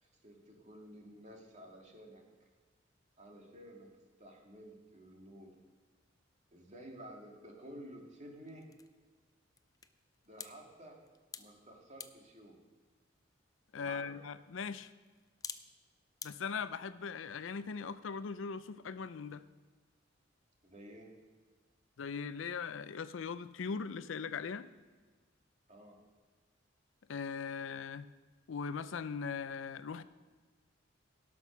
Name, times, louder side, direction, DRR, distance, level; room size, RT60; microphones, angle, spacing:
voice 1, 0.0-2.2 3.2-3.9 4.2-5.5 6.5-8.6 10.2-11.0 11.4-12.6 13.8-14.2 20.6-21.1 25.7-26.0, right 1 dB, 40° right, 0 dB, 2.2 m, -52 dB
sound 1, 8.4-16.3, left 6 dB, 20° left, 0.5 m, -54 dB
voice 2, 13.7-14.9 16.2-19.4 22.0-24.7 27.1-28.0 28.5-30.0, left 5 dB, 75° left, 14 dB, 0.5 m, -40 dB
17.5 x 6.1 x 6.1 m, 1.4 s
head